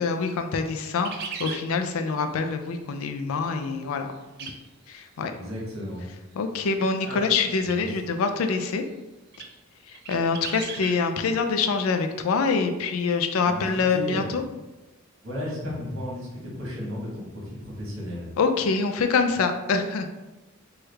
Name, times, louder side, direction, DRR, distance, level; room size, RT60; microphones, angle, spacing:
voice 1, 0.0-4.1 4.4-4.5 4.9-5.3 6.4-8.8 9.9-14.4 18.4-20.1, left 4 dB, 80° left, 7 dB, 0.4 m, -25 dB
sound 1, 0.9-1.6 4.4-4.6 4.9-5.0 7.6-7.8 8.5-8.6 9.3-9.5 9.9-11.0, right 5 dB, 50° right, 0.3 m, -36 dB
voice 2, 5.3-6.1 6.5-6.6 7.0-7.2 7.6-7.9 13.4-13.6 13.9-14.4 15.2-18.3, equal, 75° right, -4 dB, 1.2 m, -34 dB
3.2 x 2.3 x 3.2 m, 1.1 s
head